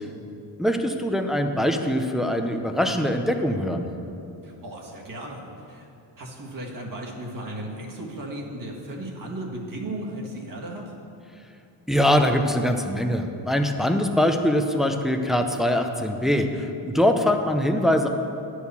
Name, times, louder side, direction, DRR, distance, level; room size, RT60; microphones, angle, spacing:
voice 1, 0.6-3.9 11.9-18.1, left 1 dB, ahead, 5 dB, 0.5 m, -23 dB
voice 2, 4.4-5.9 6.2-10.9, right 1 dB, 45° right, -1 dB, 1.6 m, -35 dB
11.0 x 4.8 x 6.8 m, 2.7 s
wide cardioid pair, 125°, 44 cm